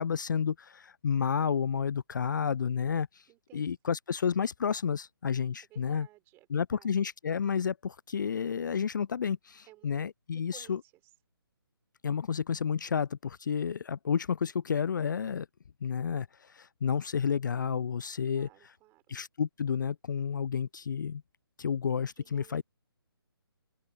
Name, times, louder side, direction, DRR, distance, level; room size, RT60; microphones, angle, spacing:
voice 1, 0.0-3.2 3.5-6.1 6.5-10.8 12.0-15.5 15.8-18.7 19.1-21.2 21.6-22.6, left 7 dB, 50° left, 0.4 m, -31 dB
voice 2, 3.3-4.0 5.7-6.9 9.7-9.9 10.5-10.8 18.3-19.2 22.2-22.6, right 19 dB, 15° right, 4.0 m, -57 dB
open air
figure-of-eight pair, 140°, 13 cm